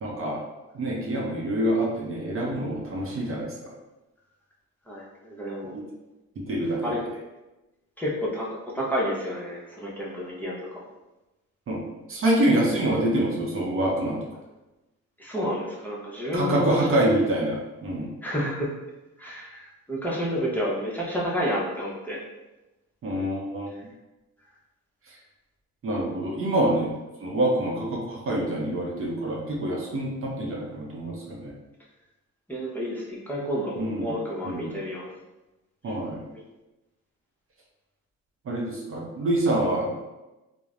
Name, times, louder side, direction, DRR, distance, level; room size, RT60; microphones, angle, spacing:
voice 1, 0.0-0.4 0.7-3.5 5.7-5.8 6.5-6.8 11.7-11.8 12.1-14.2 16.3-18.1 23.0-23.7 25.8-26.9 27.2-31.5 33.8-34.1 34.4-34.7 35.8-36.2 38.5-39.9, right 1 dB, 45° right, -2 dB, 0.6 m, -26 dB
voice 2, 4.9-5.7 6.8-7.0 8.0-8.5 8.7-10.8 15.2-17.0 18.2-18.7 19.2-22.2 32.5-35.1 35.8-35.9 36.3-36.4, equal, 5° left, -6 dB, 0.7 m, -30 dB
3.1 x 2.0 x 2.4 m, 1.0 s
cardioid pair, 90°, 30 cm